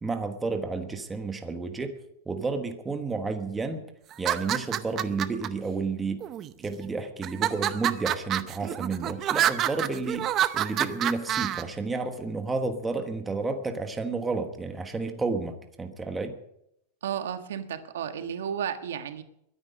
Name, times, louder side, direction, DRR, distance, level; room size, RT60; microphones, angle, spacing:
voice 1, 0.0-2.0 2.2-3.8 4.2-6.2 6.6-16.4, right 4 dB, 10° right, 6 dB, 1.3 m, -31 dB
sound 1, 4.1-5.5 6.2-6.7 7.2-11.6, right 11 dB, 25° right, 0.7 m, -27 dB
voice 2, 17.0-19.2, right 8 dB, 90° right, 8 dB, 1.6 m, -33 dB
22.5 x 9.9 x 5.4 m, 0.77 s
supercardioid pair, 160°, 0 cm